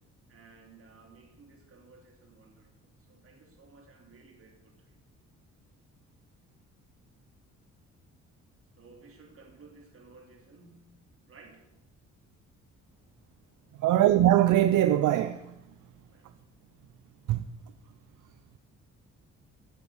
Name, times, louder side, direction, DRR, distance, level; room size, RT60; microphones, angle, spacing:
voice 1, 0.3-5.0 8.8-10.9 11.3-11.7 16.1-16.3, right 4 dB, 45° right, 3.4 m, -56 dB
voice 2, 13.8-15.6 17.3-17.5, right 12 dB, 80° right, 0.6 m, -22 dB
14.5 x 8.5 x 6.3 m
cardioid pair, 90°, 30 cm